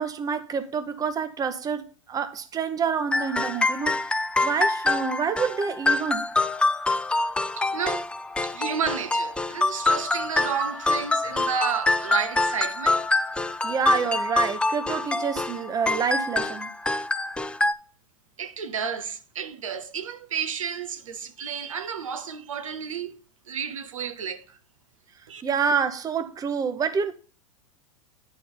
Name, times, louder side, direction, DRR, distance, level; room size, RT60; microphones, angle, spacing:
voice 1, 0.0-6.3 13.6-16.7 25.4-27.1, right 6 dB, 20° right, 0.9 m, -28 dB
sound 1, 3.1-17.7, left 2 dB, 5° left, 0.4 m, -25 dB
voice 2, 7.6-8.1 8.4-13.1 18.4-23.2 23.5-24.6 25.3-25.4, right 7 dB, 80° right, 0.9 m, -31 dB
9.8 x 4.5 x 3.8 m
hypercardioid pair, 100°, 17 cm